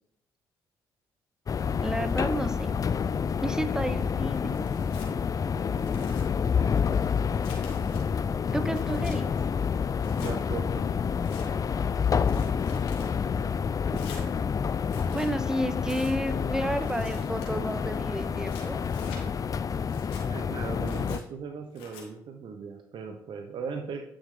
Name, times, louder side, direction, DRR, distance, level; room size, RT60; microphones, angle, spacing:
sound 1, 1.5-21.2, left 6 dB, 40° left, 0.4 m, -28 dB
voice 1, 1.8-2.7 3.4-4.7 8.5-9.4 13.9-14.0 15.0-18.8, right 1 dB, 5° right, 10 dB, 0.8 m, -31 dB
Tearing, 4.5-5.1 5.7-6.3 6.8-8.0 8.5-9.2 10.0-10.3 11.0-11.5 12.1-13.1 13.9-14.3 14.8-15.3 15.8-16.2 16.8-17.5 18.2-19.2 19.8-20.2 20.8-21.2 21.8-22.0, left 5 dB, 85° left, 1.9 m, -47 dB
voice 2, 10.2-10.9 20.3-24.0, right 5 dB, 60° right, 4 dB, 1.0 m, -38 dB
9.8 x 6.4 x 3.8 m, 0.74 s
hypercardioid pair, 55°, 9 cm